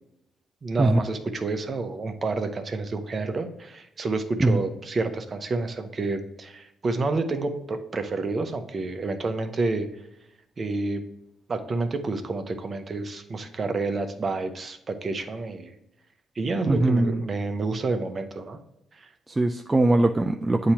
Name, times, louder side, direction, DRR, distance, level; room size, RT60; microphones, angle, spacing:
voice 1, 0.6-9.9 10.6-11.0 11.5-15.7 16.4-18.6 19.0-19.1, right 3 dB, 40° right, 8 dB, 0.7 m, -29 dB
voice 2, 16.7-17.2 19.3-20.7, right 2 dB, 20° right, 4 dB, 0.3 m, -21 dB
8.5 x 2.9 x 4.4 m, 0.85 s
cardioid pair, 90°, 0 cm